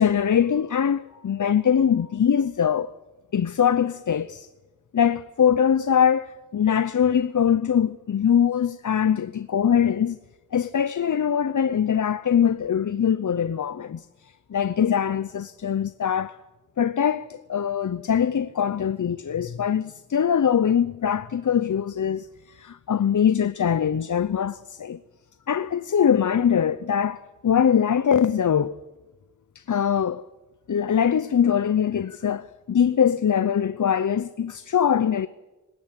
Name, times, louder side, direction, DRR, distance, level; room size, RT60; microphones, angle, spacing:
voice 1, 0.0-2.9 3.3-4.5 4.9-10.2 10.5-16.4 16.8-25.0 25.5-28.7 29.5-30.2 30.7-35.3, left 8 dB, 65° left, 0.7 m, -22 dB
20.0 x 19.0 x 9.8 m
cardioid pair, 50°, 32 cm